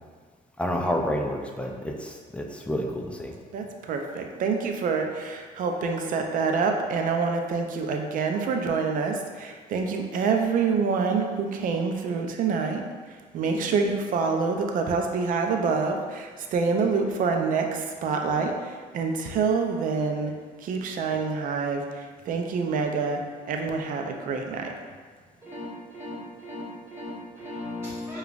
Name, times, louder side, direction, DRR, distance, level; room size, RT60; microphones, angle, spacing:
voice 1, 0.6-3.3, equal, 5° left, 0 dB, 0.4 m, -29 dB
voice 2, 3.5-12.8 13.3-20.3 20.6-23.2 23.5-24.7, right 5 dB, 55° right, 3 dB, 0.4 m, -26 dB
voice 3, 25.4-28.2, left 1 dB, 15° right, -9 dB, 1.2 m, -37 dB
4.9 x 2.3 x 2.4 m, 1.5 s
cardioid pair, 110°, 17 cm